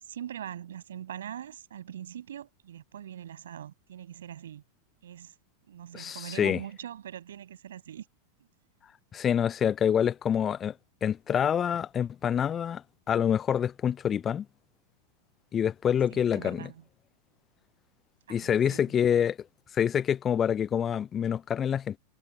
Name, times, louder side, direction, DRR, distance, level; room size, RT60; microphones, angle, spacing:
voice 1, 0.0-4.6 5.0-5.3 5.7-8.1 16.1-16.8 18.3-18.8, right 10 dB, 65° right, 7.1 m, -42 dB
voice 2, 5.9-6.6 9.1-10.7 11.0-14.5 15.5-16.7 18.3-19.4 19.7-22.0, left 8 dB, 25° left, 0.6 m, -26 dB
figure-of-eight pair, 90°, 0 cm